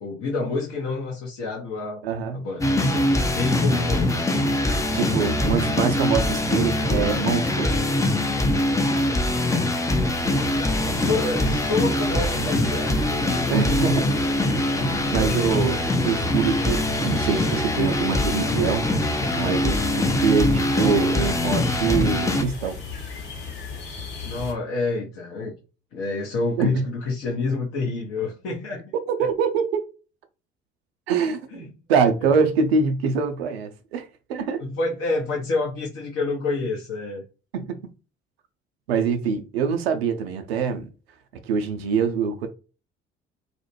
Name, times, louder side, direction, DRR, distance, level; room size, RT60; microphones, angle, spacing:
voice 1, 0.0-2.0 2.3-4.4 9.3-9.7 10.8-14.9 24.2-25.5 25.9-28.8 31.5-31.7 32.2-32.5 34.6-37.2, left 3 dB, 45° left, 0.7 m, -29 dB
voice 2, 2.0-2.5 4.9-7.7 13.5-14.1 15.1-18.9 19.4-22.8 26.6-26.9 29.1-29.9 31.1-34.6 37.5-37.9 38.9-40.9 41.4-42.5, right 5 dB, 70° right, 0.5 m, -24 dB
sound 1, 2.6-22.4, left 1 dB, 10° left, 0.5 m, -23 dB
sound 2, 10.1-24.5, left 4 dB, 65° left, 1.0 m, -36 dB
2.4 x 2.0 x 3.0 m
figure-of-eight pair, 50°, 32 cm